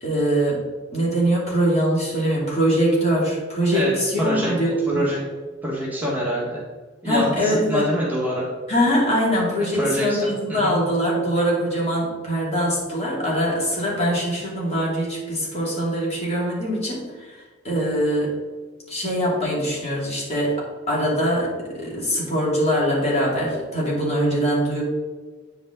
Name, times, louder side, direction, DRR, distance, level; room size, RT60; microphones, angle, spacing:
voice 1, 0.0-0.6 0.9-5.1 7.0-7.9 8.7-17.3 17.6-18.3 18.9-24.8, equal, 35° left, -5 dB, 2.6 m, -22 dB
voice 2, 4.2-4.5 4.9-5.2 5.6-6.6 7.0-8.4 9.7-10.8, equal, 10° right, -6 dB, 1.7 m, -25 dB
9.1 x 5.3 x 3.9 m, 1.4 s
head